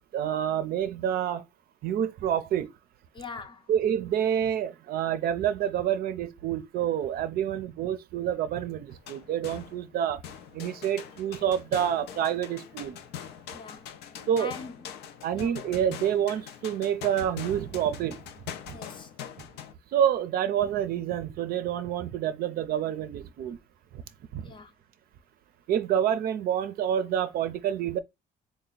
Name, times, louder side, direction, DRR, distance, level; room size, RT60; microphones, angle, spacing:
voice 1, 0.1-1.4 1.8-2.7 3.7-10.2 10.5-13.0 14.3-14.6 15.2-18.2 18.7-18.8 19.9-23.6 23.9-24.0 24.3-24.5 25.7-28.0, right 9 dB, 65° right, 0.5 m, -28 dB
voice 2, 3.1-3.6 13.5-13.9 14.4-14.7 15.3-15.6 18.7-19.1 24.4-24.7, left 4 dB, 30° left, 0.5 m, -41 dB
sound 1, 8.9-10.0 10.2-19.7, left 9 dB, 80° left, 0.5 m, -43 dB
3.3 x 2.1 x 3.9 m
cardioid pair, 110°, 17 cm